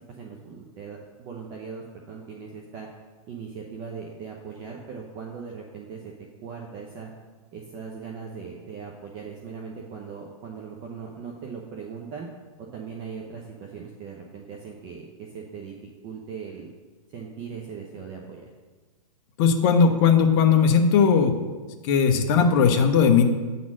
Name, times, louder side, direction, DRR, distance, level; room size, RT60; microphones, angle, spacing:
voice 1, 0.1-2.9 3.3-6.1 6.4-7.1 7.5-12.3 12.7-15.7 16.0-16.7 17.1-18.4, right 6 dB, 25° right, 0 dB, 0.8 m, -39 dB
voice 2, 19.4-21.4 21.8-23.2, left 6 dB, 35° left, 5 dB, 0.8 m, -18 dB
8.6 x 4.2 x 6.2 m, 1.3 s
hypercardioid pair, 145°, 19 cm